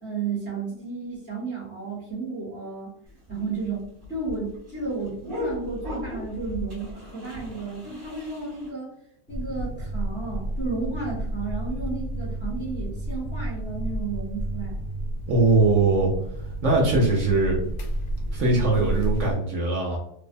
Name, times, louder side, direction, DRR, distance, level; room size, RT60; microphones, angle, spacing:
voice 1, 0.0-2.9 3.3-3.8 4.1-8.9 9.3-14.8, right 4 dB, 10° left, -6 dB, 0.7 m, -33 dB
sound 1, 3.1-8.7, left 1 dB, 40° right, 1.1 m, -37 dB
sound 2, 9.3-19.3, right 1 dB, 75° left, 1.0 m, -31 dB
voice 2, 15.3-16.1 16.6-17.6 18.3-20.0, right 3 dB, 65° right, -1 dB, 0.9 m, -21 dB
2.6 x 2.1 x 2.5 m, 0.70 s
omnidirectional pair, 1.5 m